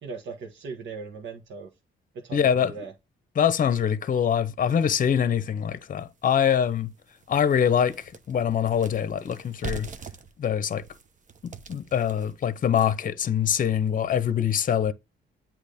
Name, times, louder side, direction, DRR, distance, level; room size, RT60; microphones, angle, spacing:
voice 1, 0.0-1.7 2.1-2.9, right 4 dB, 65° right, 1.4 m, -38 dB
voice 2, 2.3-2.7 3.4-6.9 7.3-9.9 10.4-10.8 11.4-14.9, left 8 dB, 45° left, 0.8 m, -24 dB
sound 1, 6.0-6.1 6.6-6.7 7.1-13.1, right 4 dB, 40° right, 0.9 m, -42 dB
8.3 x 3.0 x 5.1 m
cardioid pair, 90°, 20 cm